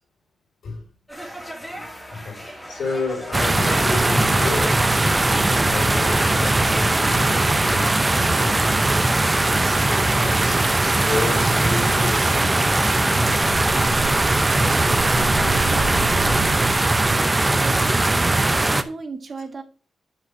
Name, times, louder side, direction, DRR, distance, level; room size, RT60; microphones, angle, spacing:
sound 1, 1.1-8.1, equal, 5° left, 2.4 m, -37 dB
voice 1, 2.1-13.8 14.1-16.2, left 3 dB, 75° left, 3.4 m, -32 dB
sound 2, 3.3-18.8, right 2 dB, 20° right, 0.6 m, -19 dB
sound 3, 13.4-16.7, right 3 dB, 80° right, 2.4 m, -30 dB
voice 2, 17.1-19.6, right 4 dB, 40° right, 1.4 m, -36 dB
10.0 x 5.1 x 5.0 m
wide cardioid pair, 125°, 0 cm